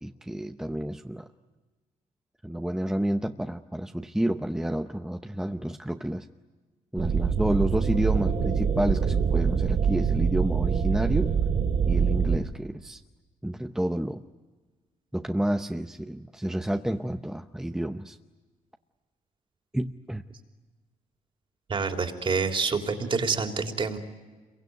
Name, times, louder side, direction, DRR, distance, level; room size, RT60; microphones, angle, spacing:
voice 1, 0.0-1.2 2.4-6.3 6.9-11.3 11.9-13.0 13.4-14.2 15.1-18.2 19.7-20.2, right 1 dB, 5° right, 6 dB, 0.8 m, -29 dB
sound 1, 7.0-12.4, right 6 dB, 50° right, 3.4 m, -24 dB
voice 2, 21.7-24.0, right 4 dB, 35° right, 4 dB, 3.3 m, -27 dB
27.5 x 23.0 x 9.4 m, 1.3 s
cardioid pair, 105°, 15 cm